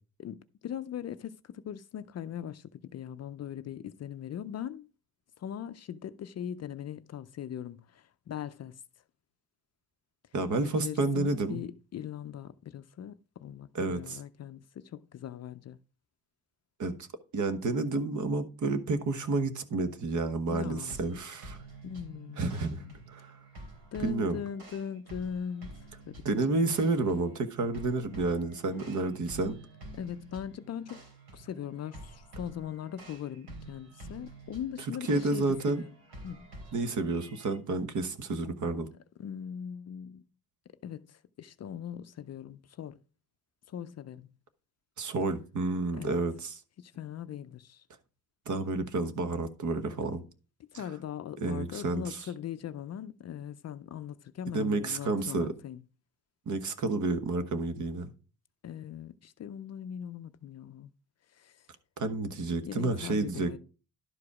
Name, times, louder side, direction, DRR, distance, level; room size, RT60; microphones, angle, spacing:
voice 1, 0.2-4.9 5.4-8.8 10.7-15.8 20.5-21.0 21.8-23.0 23.9-25.7 26.1-26.7 29.9-31.0 31.3-35.9 36.2-36.5 39.2-40.2 40.8-43.0 43.7-44.3 45.9-46.2 46.8-47.8 50.6-55.8 58.6-60.9 61.3-61.7 62.7-63.6, left 9 dB, 45° left, 0.5 m, -40 dB
voice 2, 10.3-11.6 13.7-14.2 16.8-16.9 17.3-21.6 22.4-23.4 24.0-24.4 26.2-29.6 35.1-35.8 36.7-38.9 45.0-46.6 48.5-50.2 51.4-52.3 54.5-55.5 56.5-58.1 62.0-63.6, right 3 dB, 50° right, 1.2 m, -30 dB
sound 1, 20.9-37.6, right 2 dB, 70° right, 3.4 m, -49 dB
11.5 x 4.9 x 4.8 m
cardioid pair, 130°, 38 cm